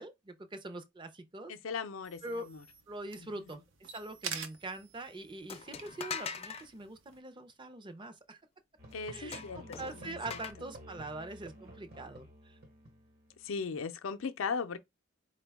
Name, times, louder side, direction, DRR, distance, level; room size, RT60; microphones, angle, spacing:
voice 1, 0.0-1.5 2.2-2.5 2.9-8.4 9.1-12.6, right 2 dB, 25° right, 0.5 m, -43 dB
voice 2, 1.5-2.6 3.2-3.6 8.9-10.4 13.4-14.8, left 5 dB, 90° left, 0.5 m, -38 dB
sound 1, 2.0-7.2, right 6 dB, 75° right, 0.6 m, -47 dB
sound 2, 5.5-6.7 9.3-10.5, left 6 dB, 30° left, 0.4 m, -41 dB
Musical instrument, 8.8-13.6, right 1 dB, 50° right, 1.0 m, -52 dB
4.4 x 2.2 x 3.4 m
head